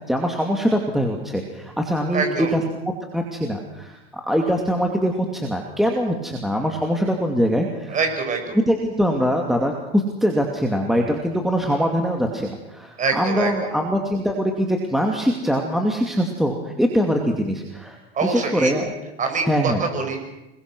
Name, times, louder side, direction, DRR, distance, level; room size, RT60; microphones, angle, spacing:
voice 1, 0.1-2.6 3.1-4.0 4.3-7.9 8.5-18.9 19.5-19.8, equal, ahead, 1 dB, 2.6 m, -22 dB
voice 2, 2.1-2.5 7.9-8.6 13.0-13.8 18.1-18.7 19.2-20.3, right 4 dB, 25° right, 4 dB, 6.7 m, -25 dB
27.5 x 22.0 x 6.3 m, 0.98 s
supercardioid pair, 130°, 30 cm